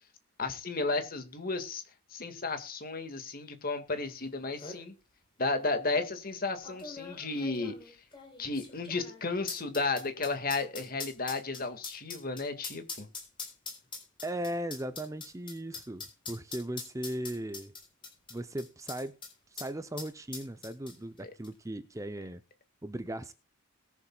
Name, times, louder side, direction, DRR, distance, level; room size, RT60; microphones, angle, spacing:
voice 1, 0.4-1.8 2.1-4.9 5.4-8.0 8.4-13.1, left 3 dB, 45° left, 1.9 m, -33 dB
sound 1, 4.1-4.2 4.4-4.8 5.6-5.7 6.6-19.3 19.6-19.7 20.0-21.2 21.4-21.5, left 4 dB, 25° left, 4.0 m, -43 dB
voice 2, 14.2-17.7 18.3-19.1 19.5-22.4 22.8-23.3, right 1 dB, 15° right, 0.6 m, -37 dB
21.5 x 7.2 x 2.3 m
head